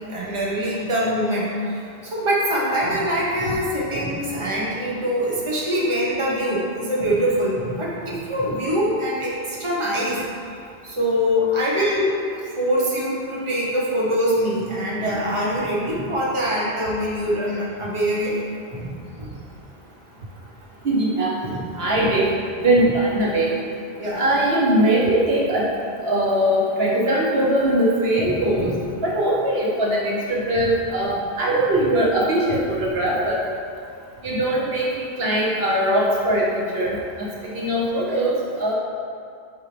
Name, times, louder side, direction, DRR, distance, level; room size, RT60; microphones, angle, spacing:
voice 1, 0.1-10.2 10.8-18.4 18.7-18.9 19.2-19.4 21.4-21.6 21.9-22.1 22.8-22.9 23.9-24.3 28.2-28.8, equal, 30° right, -5 dB, 1.2 m, -24 dB
voice 2, 20.8-21.3 21.7-22.3 22.6-23.5 24.2-25.7 26.0-28.7 29.0-33.4 34.2-37.3 37.5-38.7, right 1 dB, 75° right, -4 dB, 1.2 m, -21 dB
8.5 x 4.5 x 3.4 m, 2.4 s
omnidirectional pair, 1.1 m